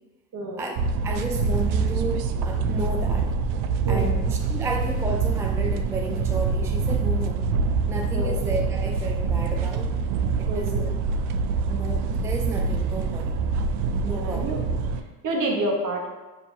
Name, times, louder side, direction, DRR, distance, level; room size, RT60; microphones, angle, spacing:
voice 1, 0.3-0.6 3.8-4.2 8.1-8.4 10.5-10.9 14.1-14.6 14.9-16.1, right 1 dB, 50° right, 0 dB, 1.3 m, -29 dB
sound 1, 0.8-15.0, right 4 dB, 70° right, 0.5 m, -25 dB
voice 2, 1.0-3.4 3.9-7.4 7.9-9.9 10.4-10.9 11.7-13.4 14.0-14.4, right 2 dB, 5° right, 2 dB, 0.4 m, -32 dB
5.0 x 3.8 x 2.6 m, 1.2 s
hypercardioid pair, 60°, 42 cm